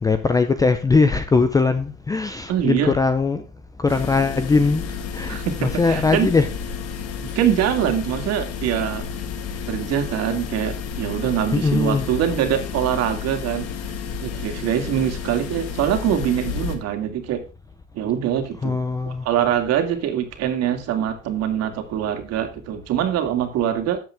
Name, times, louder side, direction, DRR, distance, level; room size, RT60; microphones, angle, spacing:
voice 1, 0.0-3.4 3.8-6.5 11.5-12.0 18.6-19.3, left 4 dB, 10° left, 0.6 m, -20 dB
voice 2, 2.5-2.9 5.3-6.3 7.2-9.0 9.7-13.7 14.2-17.4 17.9-18.8 19.0-24.0, right 10 dB, 40° right, 2.6 m, -23 dB
sound 1, 3.9-16.8, left 6 dB, 40° left, 2.5 m, -31 dB
13.0 x 7.8 x 3.5 m
supercardioid pair, 130°, 38 cm